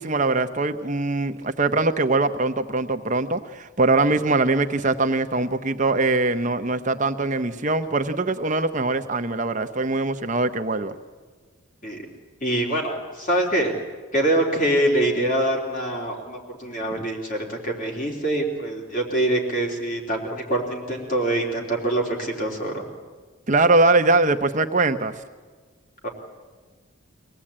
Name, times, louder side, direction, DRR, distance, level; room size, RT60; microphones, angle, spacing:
voice 1, 0.0-10.9 17.0-17.1 23.5-25.1, right 3 dB, 35° right, 8 dB, 0.9 m, -22 dB
voice 2, 12.4-13.7 14.1-22.8 26.0-26.1, right 1 dB, 40° left, 0 dB, 3.6 m, -24 dB
24.0 x 18.0 x 8.8 m, 1.4 s
head